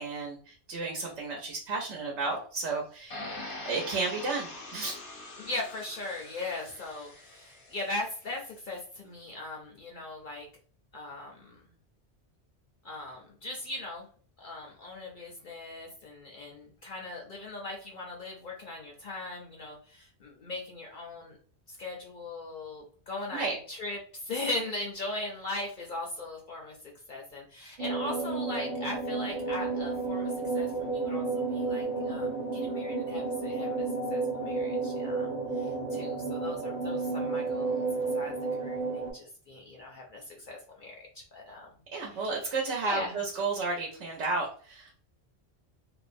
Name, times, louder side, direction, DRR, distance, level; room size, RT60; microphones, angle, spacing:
voice 1, 0.0-3.3 3.6-5.0 23.3-23.6 41.9-44.9, right 3 dB, 90° right, -1 dB, 0.9 m, -32 dB
sound 1, 3.1-8.1, left 2 dB, 80° left, 1.1 m, -43 dB
voice 2, 5.4-10.5 10.9-11.7 12.8-14.1 14.4-21.4 21.7-26.8 27.1-35.3 35.6-37.9 38.1-41.7 42.1-42.3 42.8-43.2, left 2 dB, 55° left, -1 dB, 0.6 m, -39 dB
sound 2, 27.8-39.1, right 3 dB, 45° right, 0.6 m, -32 dB
2.6 x 2.0 x 2.4 m, 0.44 s
omnidirectional pair, 1.1 m